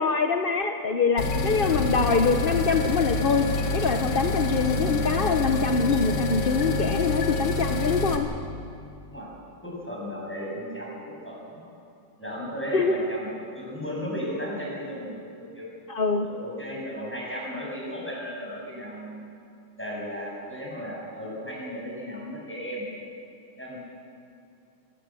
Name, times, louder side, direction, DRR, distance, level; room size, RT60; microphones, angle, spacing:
voice 1, 0.0-3.5 3.7-8.3 12.7-13.1 15.9-16.3, left 4 dB, 45° left, 5 dB, 0.7 m, -24 dB
sound 1, 1.2-8.2, left 2 dB, 60° left, 2.5 m, -27 dB
voice 2, 9.6-11.7 12.2-15.7 16.2-19.2 19.8-22.8 23.6-23.8, equal, 5° left, -4 dB, 7.5 m, -35 dB
24.5 x 18.0 x 7.7 m, 2.6 s
omnidirectional pair, 2.1 m